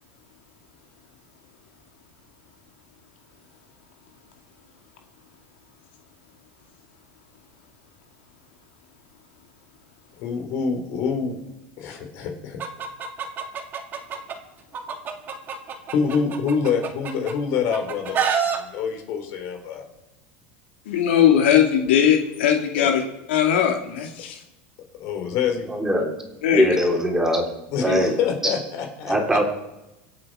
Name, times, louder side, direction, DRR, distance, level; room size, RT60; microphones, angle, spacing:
voice 1, 10.1-11.4 11.8-12.6 15.9-19.9 22.8-22.9 25.0-25.7 27.7-29.1, left 6 dB, 55° left, 4 dB, 3.7 m, -26 dB
Chicken rooster, 12.6-14.3 14.7-17.3 17.7-18.6, right 7 dB, 35° right, 2.1 m, -27 dB
voice 2, 20.9-23.0 23.3-24.4 26.4-26.7 27.9-28.0, left 9 dB, 85° left, 3 dB, 2.2 m, -19 dB
voice 3, 25.7-26.1 26.5-27.5 27.8-28.2 28.4-28.5 29.1-29.5, equal, 10° right, 1 dB, 3.5 m, -21 dB
24.5 x 8.5 x 4.8 m, 0.94 s
supercardioid pair, 120°, 6 cm